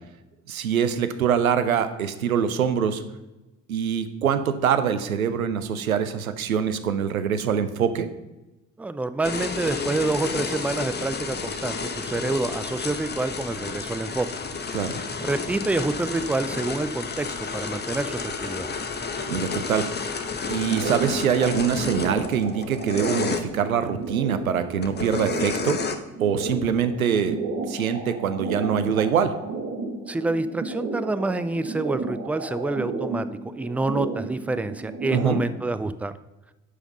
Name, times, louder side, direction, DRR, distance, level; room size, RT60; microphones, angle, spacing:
voice 1, 0.5-3.0 3.7-8.1 14.7-15.0 19.3-25.8 26.2-27.4 27.7-29.3 35.1-35.4, right 7 dB, 85° right, 11 dB, 0.7 m, -24 dB
voice 2, 8.8-14.3 15.2-17.3 17.5-18.7 30.1-36.1, right 2 dB, 5° right, 12 dB, 0.4 m, -27 dB
sound 1, 9.2-23.4 24.8-26.0, left 4 dB, 25° left, 1.0 m, -31 dB
sound 2, 20.5-35.4, right 3 dB, 50° right, 2.1 m, -33 dB
9.6 x 5.7 x 5.3 m, 1.0 s
figure-of-eight pair, 55°, 41 cm